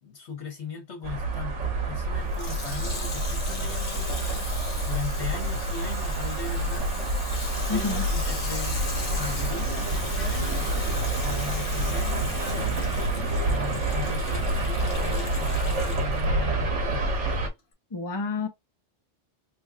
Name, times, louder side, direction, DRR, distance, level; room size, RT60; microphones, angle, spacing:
voice 1, 0.0-7.1 7.7-8.8 9.2-10.7 11.2-13.0 13.4-17.4, left 6 dB, 65° left, 1.5 m, -39 dB
sound 1, 1.0-17.5, right 1 dB, 75° right, 1.4 m, -28 dB
Water tap faucet / Sink (filling or washing), 2.2-16.2 16.9-17.0, left 3 dB, 50° left, 1.2 m, -39 dB
voice 2, 7.7-8.0 17.9-18.5, left 4 dB, 25° left, 0.7 m, -29 dB
3.4 x 3.3 x 2.4 m
omnidirectional pair, 1.2 m